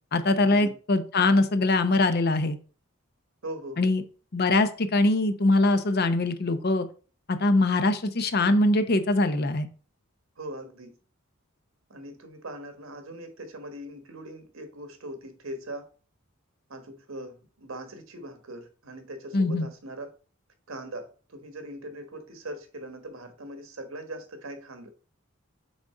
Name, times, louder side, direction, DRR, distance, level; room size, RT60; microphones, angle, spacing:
voice 1, 0.1-2.6 3.8-4.0 4.3-6.9 7.4-9.7 19.3-19.7, left 2 dB, 50° left, 0.7 m, -22 dB
voice 2, 3.4-3.9 10.4-10.9 11.9-15.9 16.7-20.1 20.7-24.9, right 1 dB, 75° right, 1.3 m, -40 dB
6.1 x 3.9 x 4.8 m
head